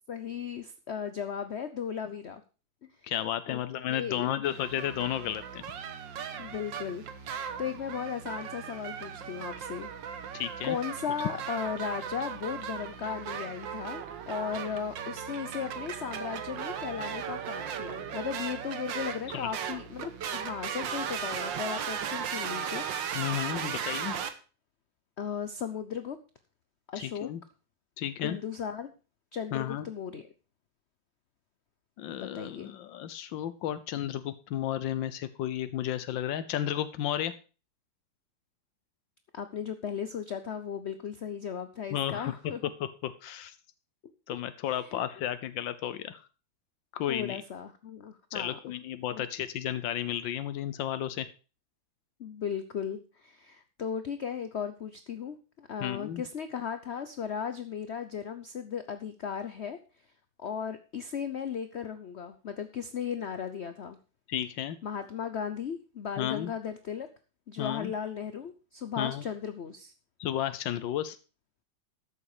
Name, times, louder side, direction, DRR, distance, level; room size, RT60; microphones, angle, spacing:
voice 1, 0.1-2.4 3.5-3.6 3.9-4.4 6.4-10.4 10.6-22.8 25.2-26.2 26.9-27.3 28.2-28.9 29.3-30.3 32.2-32.7 39.3-42.6 44.9-45.0 47.1-48.6 49.1-49.3 52.2-59.8 60.4-64.0 64.8-67.1 67.5-69.9, left 7 dB, 50° left, 10 dB, 0.8 m, -36 dB
voice 2, 3.0-5.6 10.3-10.8 19.3-19.5 23.1-24.1 27.0-27.4 28.0-28.4 29.5-29.9 32.0-37.3 41.9-42.5 42.8-43.6 44.3-46.2 46.9-47.4 48.3-51.3 55.8-56.2 64.3-64.8 66.2-66.5 67.6-67.9 69.0-69.2 70.2-71.2, left 11 dB, 90° left, 13 dB, 1.5 m, -33 dB
sound 1, 4.4-24.3, right 8 dB, 85° right, 1.8 m, -37 dB
13.5 x 7.6 x 4.9 m, 0.34 s
omnidirectional pair, 2.0 m